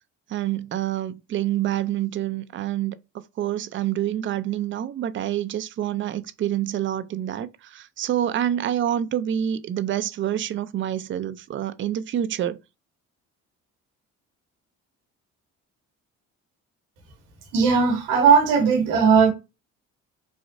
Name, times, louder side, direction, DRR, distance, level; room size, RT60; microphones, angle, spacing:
voice 1, 0.3-12.6, right 11 dB, 40° right, 0.4 m, -27 dB
voice 2, 17.5-19.3, right 6 dB, 90° right, 0.9 m, -17 dB
3.1 x 2.4 x 2.5 m
supercardioid pair, 75°, 32 cm